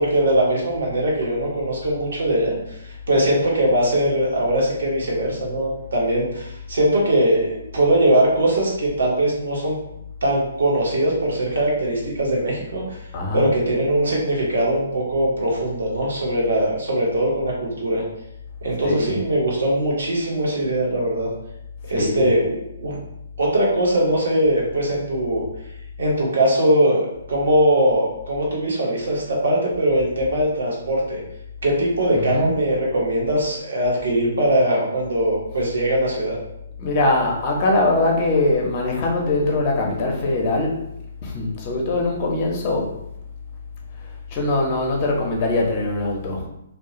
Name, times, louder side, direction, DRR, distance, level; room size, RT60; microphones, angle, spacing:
voice 1, 0.0-9.8 10.2-13.0 13.3-18.0 18.6-21.3 21.9-23.0 23.4-25.4 26.0-27.0 27.3-31.2 31.6-36.4, right 1 dB, 60° right, -3 dB, 0.8 m, -21 dB
voice 2, 13.1-13.5 18.8-19.2 21.9-22.3 32.1-32.5 36.8-40.8 41.2-42.9 44.3-46.5, left 2 dB, 30° left, 0 dB, 0.6 m, -22 dB
2.3 x 2.1 x 2.9 m, 0.83 s
figure-of-eight pair, 130°, 0 cm